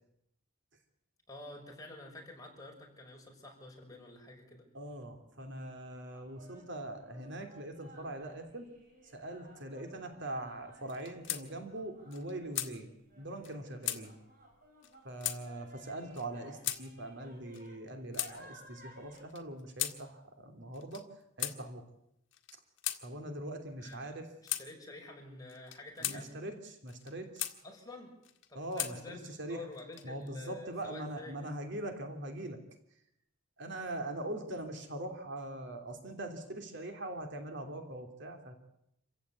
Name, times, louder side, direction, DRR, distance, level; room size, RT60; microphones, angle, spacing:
voice 1, 1.3-4.6 23.8-26.3 27.6-28.1 28.5-29.2 29.5-31.3, left 2 dB, 20° left, 0 dB, 5.9 m, -49 dB
voice 2, 4.7-8.7 9.1-14.1 15.0-21.0 21.4-21.8 23.0-24.3 26.0-27.5 28.5-29.7 30.0-32.6 33.6-38.6, right 1 dB, 60° right, 5 dB, 2.9 m, -42 dB
sound 1, 6.1-19.2, right 1 dB, 45° right, 7.5 m, -58 dB
sound 2, 10.9-11.4 11.8-11.9 12.1-12.7 13.4-13.5 13.8-14.0 14.8-14.9 15.2-15.4 16.1-16.3 16.6-16.8 17.5-18.3 19.1-20.0 20.7-21.0 21.4-21.6 22.3-23.0 23.9-24.0 24.5-24.7 25.5-26.2 26.9-27.6 28.2-28.9 29.7-30.3, left 14 dB, 65° left, 1.8 m, -37 dB
27.0 x 16.0 x 8.5 m, 0.80 s
head